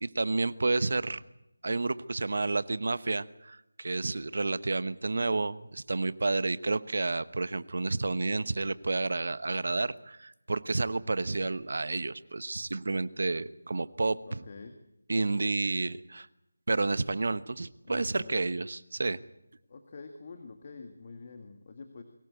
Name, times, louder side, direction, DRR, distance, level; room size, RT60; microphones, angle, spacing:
voice 1, 0.0-1.2 1.6-14.4 15.1-16.3 16.7-19.2, right 3 dB, 60° right, 16 dB, 1.1 m, -30 dB
voice 2, 14.3-14.8 17.8-18.5 19.7-22.0, left 4 dB, 35° left, 6 dB, 1.9 m, -46 dB
23.0 x 17.5 x 8.3 m, 0.85 s
figure-of-eight pair, 165°, 0 cm